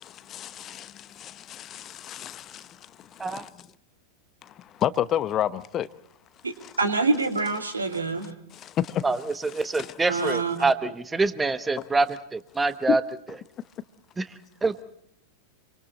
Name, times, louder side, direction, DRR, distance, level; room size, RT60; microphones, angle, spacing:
voice 1, 0.3-0.9 1.2-2.4 3.3-3.4 4.8-5.9 8.8-9.0, left 11 dB, 30° left, 0.9 m, -28 dB
voice 2, 6.4-8.3 10.1-10.9, right 3 dB, 75° right, 2.7 m, -26 dB
voice 3, 9.0-13.0 14.2-14.3 14.6-14.8, right 3 dB, 10° right, 1.2 m, -25 dB
28.0 x 24.5 x 4.1 m
figure-of-eight pair, 90°, 0 cm